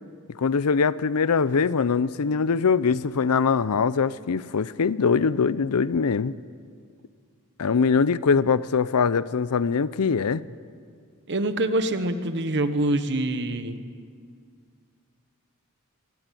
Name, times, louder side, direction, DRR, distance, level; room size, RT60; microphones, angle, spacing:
voice 1, 0.4-6.3 7.6-10.4, left 5 dB, 85° left, 18 dB, 0.6 m, -22 dB
voice 2, 11.3-13.8, right 1 dB, 55° right, 10 dB, 1.3 m, -25 dB
23.5 x 17.5 x 7.7 m, 2.2 s
head